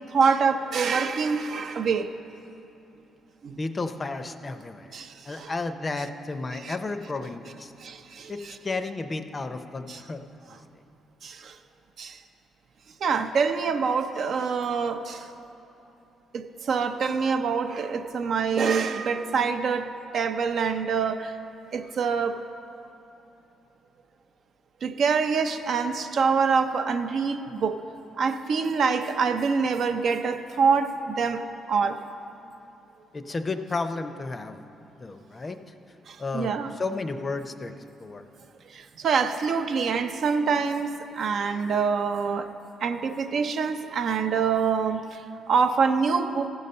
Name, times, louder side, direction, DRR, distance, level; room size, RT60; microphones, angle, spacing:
voice 1, 0.1-2.1 3.4-3.6 4.9-5.5 6.5-6.8 7.8-8.6 9.9-10.0 11.2-11.6 12.0-12.2 13.0-15.3 16.3-21.3 21.7-22.4 24.8-27.8 28.2-32.0 36.1-36.7 38.7-42.5 42.8-46.5, right 5 dB, 60° right, 7 dB, 0.5 m, -25 dB
voice 2, 3.6-4.9 5.3-7.7 8.3-10.2 10.5-10.6 33.1-34.6 35.0-35.6 36.2-37.7 38.0-38.2, left 3 dB, 30° left, 8 dB, 0.5 m, -32 dB
15.0 x 5.5 x 5.3 m, 2.9 s
cardioid pair, 90°, 0 cm